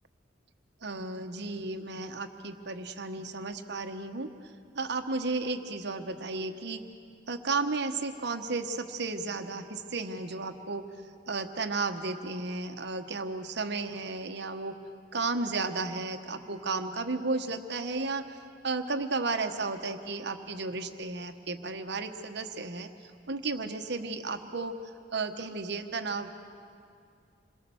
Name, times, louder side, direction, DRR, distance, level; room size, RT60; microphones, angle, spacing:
voice 1, 0.8-4.3 4.7-6.8 7.3-10.8 11.3-14.8 15.1-18.2 18.6-22.9 23.3-24.7 25.1-26.3, right 3 dB, 65° right, 7 dB, 1.2 m, -33 dB
27.5 x 22.0 x 7.1 m, 2.4 s
head